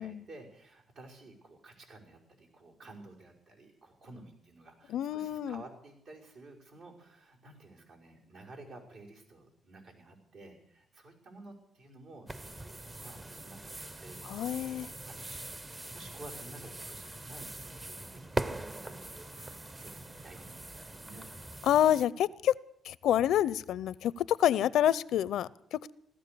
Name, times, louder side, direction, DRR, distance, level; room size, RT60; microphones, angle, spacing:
voice 1, 0.0-21.3, right 2 dB, 70° right, -2 dB, 5.5 m, -53 dB
voice 2, 4.9-5.6 14.2-14.9 21.6-22.6 22.8-25.9, left 11 dB, 75° left, 20 dB, 0.5 m, -28 dB
sound 1, 12.3-22.1, right 2 dB, 20° right, 0.7 m, -42 dB
16.5 x 13.0 x 6.8 m, 0.75 s
cardioid pair, 90°, 0 cm